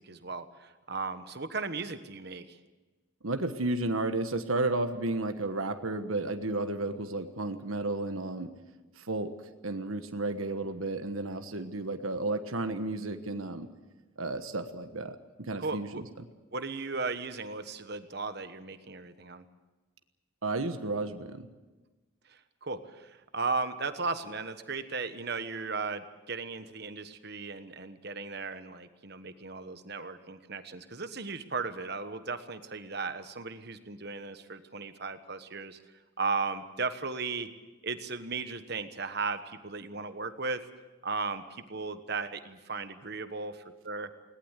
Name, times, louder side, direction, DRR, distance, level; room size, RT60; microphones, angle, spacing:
voice 1, 0.0-2.6 15.6-16.0 16.5-19.4 22.3-35.8 36.2-37.5 37.8-40.6 41.0-44.1, right 4 dB, 50° right, 10 dB, 1.3 m, -36 dB
voice 2, 3.2-8.5 9.0-9.3 9.6-13.7 14.2-16.1 20.4-21.5, right 2 dB, 85° right, 7 dB, 1.4 m, -32 dB
21.0 x 18.5 x 8.2 m, 1.2 s
head